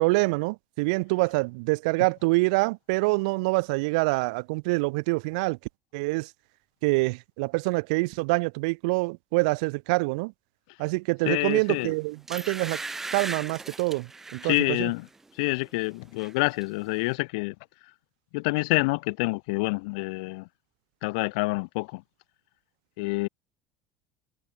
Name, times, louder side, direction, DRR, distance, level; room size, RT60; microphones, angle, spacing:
voice 1, 0.0-5.6 5.9-6.3 6.8-10.3 10.8-12.8 13.1-14.9, right 27 dB, 85° right, 0.6 m, -26 dB
voice 2, 11.3-11.9 14.4-15.1 15.4-17.5 18.3-20.5 21.0-22.0 23.0-23.3, left 27 dB, 80° left, 2.3 m, -27 dB
sound 1, 11.6-11.8 12.3-14.6 15.1-15.3 15.6-16.3 16.6-16.7, right 3 dB, 10° right, 3.9 m, -37 dB
cardioid pair, 180°, 4 cm